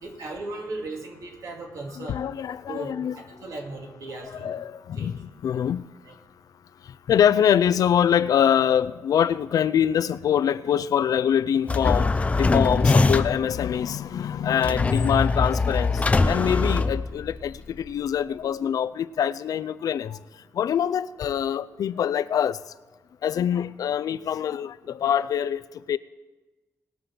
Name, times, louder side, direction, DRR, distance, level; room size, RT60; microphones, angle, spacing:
voice 1, 0.0-2.2 2.7-4.5 4.9-5.1 6.0-6.1, right 2 dB, 70° right, 2.2 m, -37 dB
voice 2, 2.0-3.2 4.4-5.9 7.1-20.2 20.6-22.6 23.2-25.6 25.9-26.0, left 9 dB, 85° left, 0.4 m, -24 dB
sound 1, 11.7-13.5 14.6-17.5, left 3 dB, 20° left, 0.5 m, -22 dB
19.5 x 6.7 x 5.9 m
wide cardioid pair, 175°, 6 cm